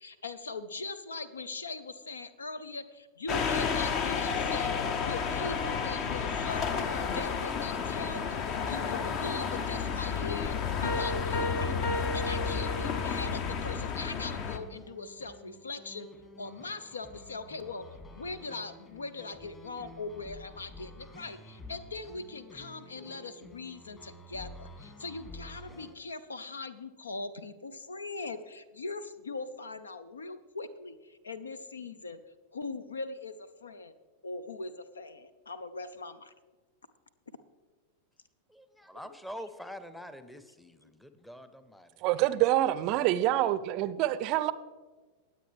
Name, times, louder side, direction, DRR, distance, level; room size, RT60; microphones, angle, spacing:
voice 1, 0.0-4.7 5.0-11.8 12.1-16.1 16.4-17.9 18.1-32.2 32.5-33.9 34.2-36.3 40.8-40.9, left 3 dB, 75° left, 0.7 m, -41 dB
sound 1, 3.3-14.6, left 6 dB, 40° left, 0.8 m, -31 dB
sound 2, 10.8-13.3, left 1 dB, 55° left, 1.3 m, -34 dB
sound 3, 11.9-25.9, left 1 dB, 25° left, 2.0 m, -50 dB
voice 2, 38.5-42.0, equal, 5° left, 0.8 m, -45 dB
voice 3, 42.0-44.5, right 14 dB, 40° right, 0.5 m, -26 dB
19.0 x 8.0 x 3.4 m
figure-of-eight pair, 90°, 0 cm